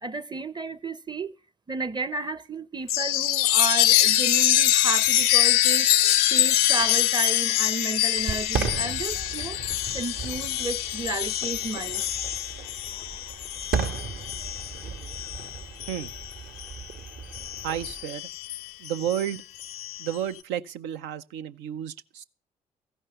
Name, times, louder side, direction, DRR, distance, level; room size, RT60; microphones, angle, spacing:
voice 1, 0.0-1.3 1.7-5.9 6.3-9.6 9.9-12.0, right 3 dB, 25° right, 0.7 m, -32 dB
Chime, 2.9-16.9 17.3-20.2, left 12 dB, 75° left, 0.6 m, -25 dB
Fireworks, 8.2-18.0, right 5 dB, 60° right, 1.3 m, -35 dB
voice 2, 17.6-18.3 18.8-19.4 20.0-22.2, right 10 dB, 75° right, 0.6 m, -31 dB
14.5 x 5.4 x 8.9 m
hypercardioid pair, 45°, 19 cm